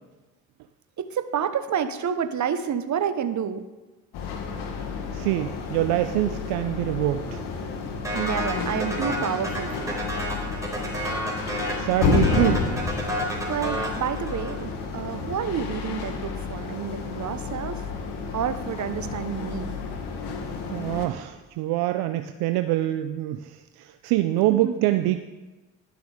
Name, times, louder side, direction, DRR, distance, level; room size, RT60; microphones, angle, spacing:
voice 1, 1.0-3.6 8.1-10.0 13.5-17.8 18.3-19.8 24.5-24.9, right 8 dB, 45° right, 11 dB, 1.0 m, -29 dB
sound 1, 4.1-21.1, left 5 dB, 70° left, 1.5 m, -30 dB
voice 2, 5.1-7.4 11.8-12.6 20.7-25.2, right 15 dB, 70° right, 9 dB, 0.6 m, -25 dB
sound 2, 8.0-14.7, equal, 10° right, 3.7 m, -31 dB
11.5 x 7.0 x 5.0 m, 1.2 s
hypercardioid pair, 50°, 40 cm